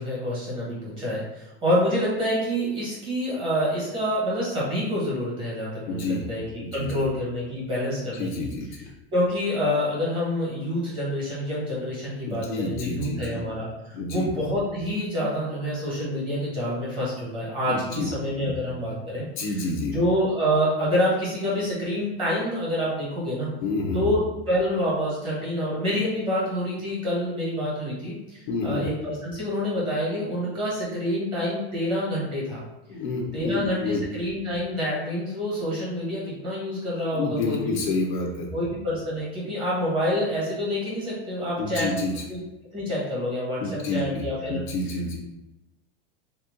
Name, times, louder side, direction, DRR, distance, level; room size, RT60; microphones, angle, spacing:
voice 1, 0.0-8.5 9.1-19.5 19.9-23.5 23.9-24.2 24.5-32.6 33.3-37.7 38.5-42.0 42.3-42.4 42.7-44.6, equal, 15° right, -6 dB, 1.3 m, -27 dB
voice 2, 5.9-6.3 6.6-6.9 8.1-8.9 12.3-13.4 13.9-14.3 17.7-18.1 18.4-18.6 19.4-20.0 23.6-24.1 28.5-28.9 32.9-34.0 37.1-38.5 41.6-42.2 43.6-45.2, left 3 dB, 50° left, 0 dB, 0.6 m, -29 dB
3.4 x 3.0 x 3.6 m, 0.98 s
supercardioid pair, 175°, 31 cm